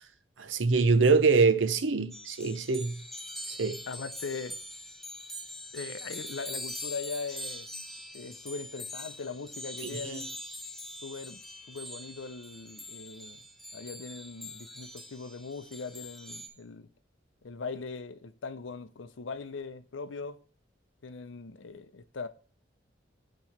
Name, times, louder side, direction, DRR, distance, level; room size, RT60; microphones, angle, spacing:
voice 1, 0.4-3.0 3.5-3.8 9.8-10.3, right 4 dB, 85° right, 0.7 m, -25 dB
sound 1, 2.1-16.5, left 1 dB, ahead, 0.9 m, -43 dB
voice 2, 3.9-4.6 5.7-7.7 8.1-10.3 11.0-11.4 11.7-13.4 13.7-16.9 17.4-20.4 21.0-22.3, left 4 dB, 90° left, 0.6 m, -40 dB
8.6 x 3.0 x 5.9 m
head